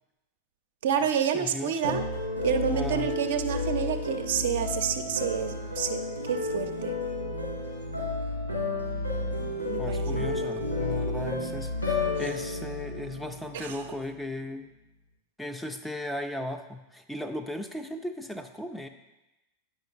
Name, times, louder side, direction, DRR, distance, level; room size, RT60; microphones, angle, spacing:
voice 1, 0.8-2.0 2.4-6.9 9.6-10.5 13.5-13.7, right 8 dB, 60° right, 7 dB, 0.5 m, -29 dB
voice 2, 1.3-2.1 2.7-3.1 9.8-14.7 15.4-18.9, left 1 dB, 5° left, 6 dB, 0.4 m, -36 dB
sound 1, 1.8-13.9, left 2 dB, 90° left, 1.8 m, -31 dB
8.8 x 5.4 x 2.4 m, 1.0 s
figure-of-eight pair, 90°, 0 cm